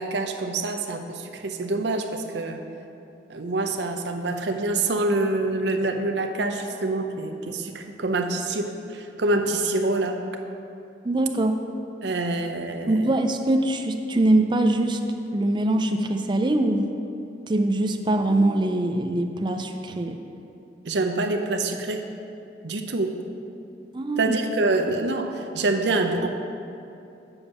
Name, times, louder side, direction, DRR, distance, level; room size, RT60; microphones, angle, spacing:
voice 1, 0.0-2.6 3.3-10.2 12.0-13.2 20.8-22.0 22.6-23.2 24.2-26.3, right 2 dB, 70° right, 5 dB, 0.7 m, -26 dB
voice 2, 11.0-11.6 12.9-15.0 15.3-16.9 17.5-20.2 23.9-24.4, right 1 dB, 25° right, 5 dB, 0.5 m, -23 dB
7.1 x 5.4 x 7.1 m, 2.7 s
head